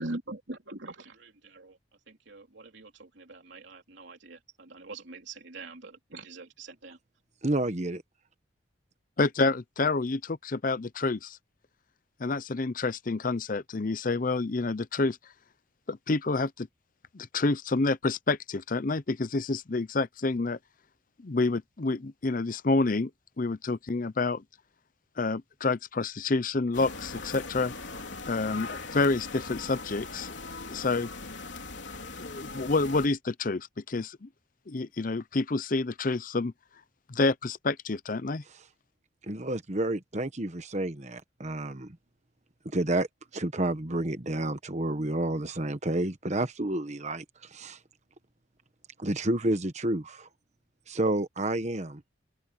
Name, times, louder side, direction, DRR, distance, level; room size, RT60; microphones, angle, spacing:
voice 1, 0.0-1.8 2.1-7.0, right 2 dB, 65° right, 3.4 m, -43 dB
voice 2, 7.4-8.0 39.3-42.0 42.7-43.1 43.3-47.2 47.5-47.8 49.0-50.3 50.9-52.0, right 1 dB, 35° right, 1.3 m, -30 dB
voice 3, 9.2-11.4 12.2-15.2 15.9-16.7 17.1-20.6 21.2-23.1 23.4-24.4 25.2-27.7 28.3-30.3 30.7-31.1 32.2-34.3 34.7-36.5 37.1-38.4, left 3 dB, 45° left, 0.6 m, -28 dB
sound 1, 26.7-33.1, left 3 dB, 70° left, 3.5 m, -40 dB
open air
head